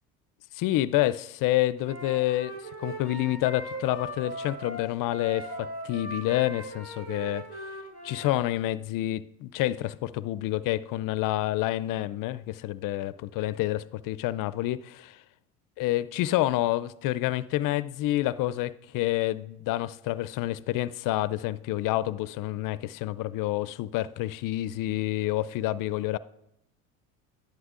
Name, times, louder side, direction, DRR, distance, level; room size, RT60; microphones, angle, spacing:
voice 1, 0.5-7.5 8.0-15.2 15.8-26.2, left 15 dB, 50° left, 0.5 m, -28 dB
Wind instrument woodwind instrument, 1.8-8.4, right 1 dB, 65° right, 3.2 m, -39 dB
11.5 x 11.0 x 2.5 m
hypercardioid pair, 75°, 42 cm